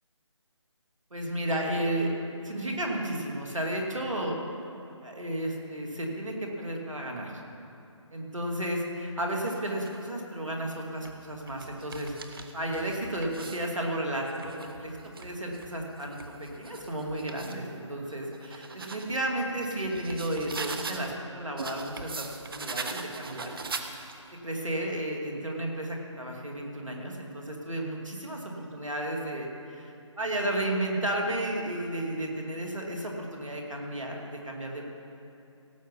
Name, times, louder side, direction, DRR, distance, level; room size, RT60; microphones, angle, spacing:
voice 1, 1.1-2.1 2.4-4.4 5.0-7.3 8.1-22.3 22.5-23.5 24.4-34.9, right 1 dB, 80° right, 0 dB, 2.5 m, -33 dB
sound 1, 9.3-10.1 10.8-13.7 14.2-17.6 18.1-21.2 21.6-24.3, right 4 dB, 45° right, 0.8 m, -41 dB
17.0 x 7.7 x 5.4 m, 2.8 s
figure-of-eight pair, 155°, 16 cm